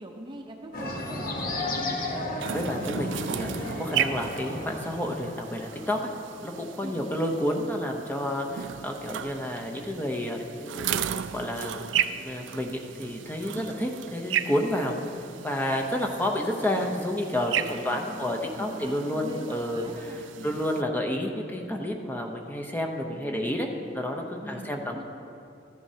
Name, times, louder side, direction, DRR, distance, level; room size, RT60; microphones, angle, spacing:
voice 1, 0.0-1.4 6.8-7.1 13.5-13.9 17.7-20.6 23.1-24.0 24.4-25.0, right 1 dB, 25° right, 2 dB, 0.7 m, -42 dB
sound 1, 0.7-5.7, left 1 dB, 50° left, 1.1 m, -33 dB
sound 2, 2.4-20.8, right 9 dB, 75° right, 0.4 m, -35 dB
voice 2, 2.5-6.1 6.4-11.0 11.3-15.0 15.4-20.2 20.4-23.7 23.9-25.0, left 1 dB, 10° left, 1 dB, 0.7 m, -30 dB
14.0 x 10.5 x 2.8 m, 2.7 s
head